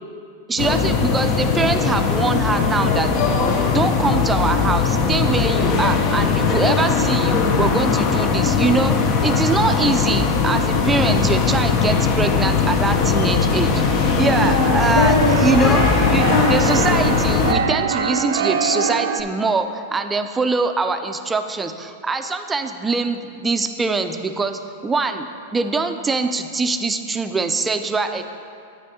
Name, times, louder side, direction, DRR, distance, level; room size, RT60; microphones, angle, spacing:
voice 1, 0.5-3.3 3.7-13.8 14.2-25.3 25.5-28.2, right 4 dB, 15° right, 8 dB, 0.4 m, -23 dB
sound 1, 0.6-17.5, left 5 dB, 45° left, 0.7 m, -19 dB
Child speech kid speaking, 10.5-12.2 12.9-13.8 14.3-17.4, left 2 dB, 75° left, 1.0 m, -25 dB
Keyboard (musical), 13.3-19.2, right 6 dB, 75° right, 0.5 m, -25 dB
9.4 x 7.4 x 2.8 m, 2.4 s
hypercardioid pair, 110°, 0 cm